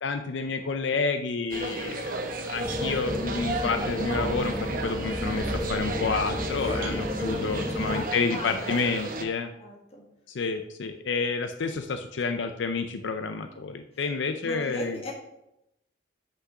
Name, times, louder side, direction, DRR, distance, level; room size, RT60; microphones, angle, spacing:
voice 1, 0.0-9.5 10.3-15.0, left 4 dB, 80° left, 8 dB, 0.5 m, -29 dB
sound 1, 1.5-9.2, right 2 dB, 50° right, 0.9 m, -34 dB
sound 2, 2.6-8.1, left 1 dB, 10° left, 0.7 m, -32 dB
voice 2, 6.7-8.7 9.6-10.0 13.9-14.1 14.4-15.1, left 2 dB, 35° left, -1 dB, 1.8 m, -39 dB
6.1 x 5.7 x 5.7 m, 0.85 s
head